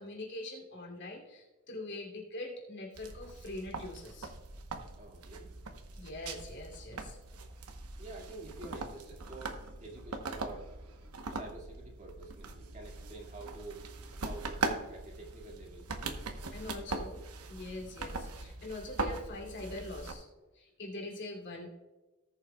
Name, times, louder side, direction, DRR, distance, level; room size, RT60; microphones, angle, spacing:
voice 1, 0.0-4.3 5.9-7.2 16.5-17.2 17.5-20.3 20.5-21.8, left 2 dB, 55° left, 0 dB, 2.6 m, -43 dB
sound 1, 3.0-20.1, right 3 dB, 90° right, 1.0 m, -41 dB
voice 2, 5.0-5.5 8.0-10.7 11.3-13.9 14.2-15.9 16.6-17.1 17.6-17.9, right 3 dB, 35° right, 0 dB, 2.0 m, -48 dB
18.5 x 7.1 x 2.3 m, 1.1 s
head